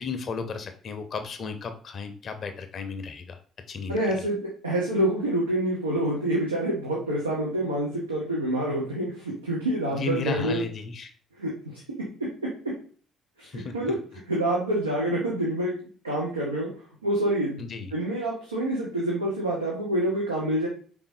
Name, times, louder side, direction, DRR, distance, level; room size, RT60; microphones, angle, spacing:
voice 1, 0.0-3.4 3.7-4.0 9.9-11.1 13.4-14.0 17.6-17.9, left 4 dB, 45° left, 8 dB, 0.6 m, -34 dB
voice 2, 3.9-10.6 11.4-11.8 12.2-12.5 13.4-14.0 14.3-15.7 16.0-16.7 17.0-20.7, right 1 dB, 85° right, -4 dB, 0.8 m, -27 dB
4.8 x 3.6 x 2.6 m, 0.43 s
figure-of-eight pair, 45°, 0 cm